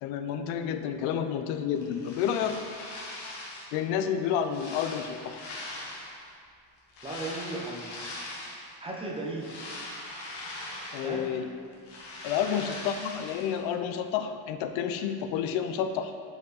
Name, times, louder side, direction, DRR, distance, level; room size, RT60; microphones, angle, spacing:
voice 1, 0.0-2.7 3.7-5.4 10.9-11.5 12.2-16.1, left 8 dB, 80° left, 9 dB, 0.6 m, -30 dB
sound 1, 1.7-3.8 4.2-6.3 6.9-8.7 9.1-11.4 11.6-13.6, left 2 dB, 60° left, 1.3 m, -41 dB
voice 2, 7.0-8.2 8.8-9.5 11.0-11.4, right 2 dB, 10° right, -3 dB, 0.6 m, -36 dB
5.1 x 5.0 x 4.0 m, 2.2 s
cardioid pair, 150°, 47 cm